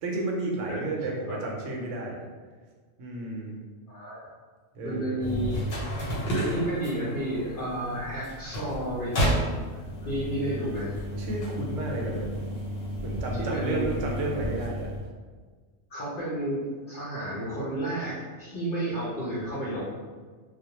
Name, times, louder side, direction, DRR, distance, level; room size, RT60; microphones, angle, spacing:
voice 1, 0.0-2.2 3.0-3.6 4.7-5.3 11.2-12.5 13.0-14.9, right 2 dB, 80° right, -1 dB, 0.9 m, -32 dB
voice 2, 3.9-4.2 4.8-5.6 6.3-9.4 9.7-11.0 13.3-14.0 15.9-19.9, right 1 dB, 55° left, -9 dB, 0.7 m, -32 dB
sound 1, 5.2-15.1, equal, 90° left, 1.1 m, -32 dB
2.3 x 2.1 x 2.8 m, 1.5 s
omnidirectional pair, 1.3 m